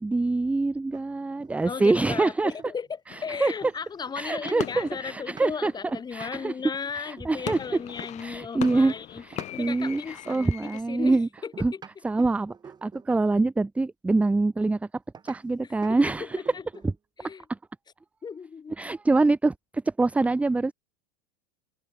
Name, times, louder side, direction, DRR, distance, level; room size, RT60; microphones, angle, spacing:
voice 1, 0.0-2.5 3.4-3.5 4.2-5.7 6.1-6.5 7.3-7.6 8.2-8.9 9.2-10.0 10.3-11.3 11.6-11.7 12.0-12.6 12.8-14.8 15.2-16.4 16.8-16.9 18.8-19.5 20.0-20.7, right 3 dB, 5° right, 0.6 m, -24 dB
sound 1, 0.9-2.9 3.2-9.0 9.3-10.5 11.4-13.2 15.1-15.4 15.8-16.0 16.3-17.0, right 6 dB, 20° right, 3.3 m, -48 dB
voice 2, 1.6-11.8 15.6-16.7 17.2-17.5 18.2-18.7, left 6 dB, 20° left, 7.6 m, -36 dB
sound 2, 3.1-6.7 7.2-10.8, left 13 dB, 40° left, 1.7 m, -40 dB
open air
hypercardioid pair, 90°, 19 cm